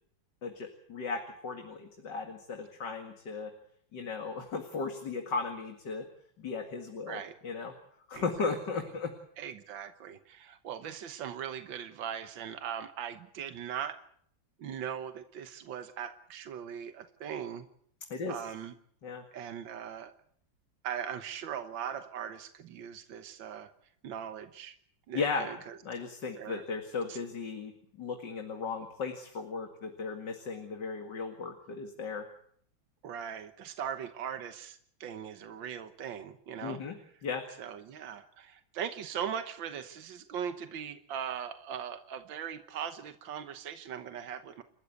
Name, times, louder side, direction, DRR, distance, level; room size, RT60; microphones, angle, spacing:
voice 1, 0.4-3.5 3.9-6.1 6.4-7.7 8.1-9.1 18.1-18.4 19.0-19.2 25.1-25.5 25.8-32.3 36.6-37.0 37.2-37.4, left 4 dB, 65° left, 4 dB, 2.7 m, -36 dB
voice 2, 8.1-8.6 9.4-14.0 14.6-17.7 18.3-18.7 19.3-20.1 20.8-23.7 24.0-24.8 25.1-25.8 26.3-26.6 27.1-27.2 33.0-36.8 37.6-44.6, right 8 dB, 80° right, 9 dB, 1.9 m, -40 dB
29.5 x 13.5 x 8.4 m, 0.65 s
omnidirectional pair, 2.0 m